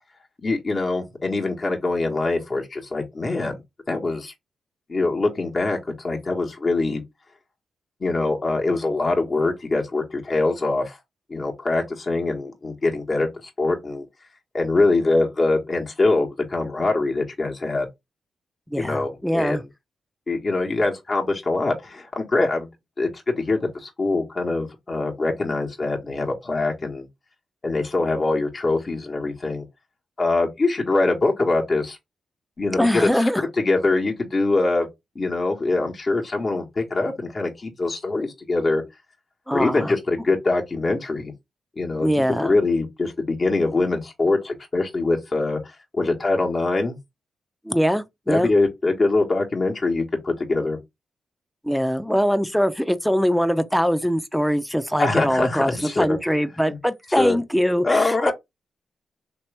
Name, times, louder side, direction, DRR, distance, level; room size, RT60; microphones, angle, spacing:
voice 1, 0.4-3.6 3.9-4.3 4.9-7.0 8.0-11.0 11.3-14.1 14.5-17.9 18.8-19.6 20.3-22.7 23.0-27.1 27.6-29.6 30.2-32.0 32.6-33.2 33.6-34.9 35.1-38.8 39.5-41.3 41.8-42.1 42.4-47.0 48.3-50.8 55.0-56.2 56.7-56.8 57.2-57.4 57.8-58.3, left 3 dB, 45° left, 1.3 m, -23 dB
voice 2, 18.7-19.6 32.6-33.4 39.5-39.9 42.0-42.5 47.6-48.5 51.6-58.3, equal, 5° left, 0.6 m, -22 dB
3.3 x 3.0 x 3.2 m
supercardioid pair, 50°, 0 cm